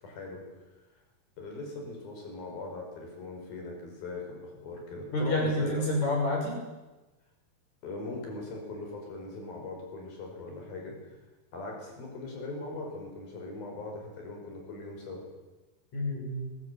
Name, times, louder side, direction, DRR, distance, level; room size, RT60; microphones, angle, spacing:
voice 1, 0.0-0.4 1.4-6.0 7.8-11.2 11.5-15.3, left 3 dB, 65° left, 1 dB, 7.4 m, -40 dB
voice 2, 5.1-6.6 15.9-16.6, left 1 dB, 45° left, 0 dB, 7.2 m, -29 dB
20.5 x 16.5 x 8.4 m, 1.1 s
omnidirectional pair, 4.5 m